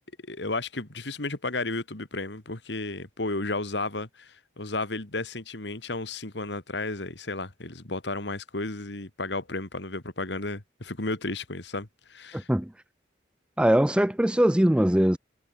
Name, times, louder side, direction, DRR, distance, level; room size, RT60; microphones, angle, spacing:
voice 1, 0.3-12.5, left 2 dB, 75° left, 2.3 m, -33 dB
voice 2, 12.3-12.7 13.6-15.2, equal, 5° right, 0.4 m, -21 dB
head